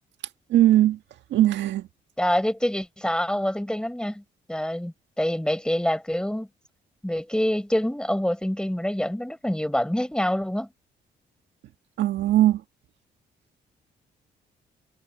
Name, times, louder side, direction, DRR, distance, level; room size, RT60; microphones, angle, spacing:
voice 1, 0.5-1.0 1.3-1.9 12.0-12.6, right 13 dB, 80° right, 1.7 m, -19 dB
voice 2, 2.2-4.2 4.5-6.5 7.0-10.7, left 1 dB, 5° left, 5.6 m, -26 dB
cardioid pair, 75°, 18 cm